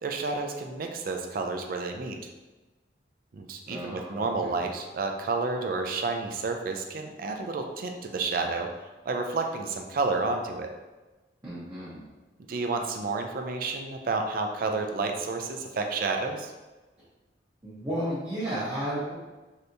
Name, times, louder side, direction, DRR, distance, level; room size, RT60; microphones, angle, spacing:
voice 1, 0.0-2.2 3.3-8.7 9.1-10.7 12.5-16.5, right 3 dB, 50° right, 4 dB, 0.4 m, -30 dB
voice 2, 3.7-4.5 11.4-12.1 17.6-19.1, right 1 dB, 20° right, -10 dB, 0.7 m, -33 dB
3.3 x 2.7 x 2.6 m, 1.2 s
head